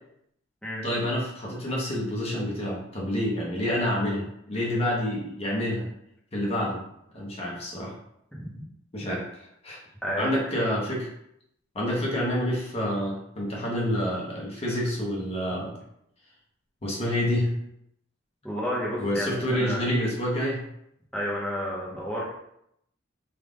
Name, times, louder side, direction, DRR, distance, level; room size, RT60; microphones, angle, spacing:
voice 1, 0.8-5.9 6.3-6.8 7.1-7.9 8.9-9.8 10.2-11.1 11.7-15.7 16.8-17.5 19.0-20.6, equal, 30° left, -4 dB, 0.8 m, -28 dB
voice 2, 18.4-19.9 21.1-22.3, equal, 5° left, -6 dB, 0.8 m, -31 dB
3.5 x 2.4 x 3.7 m, 0.75 s
head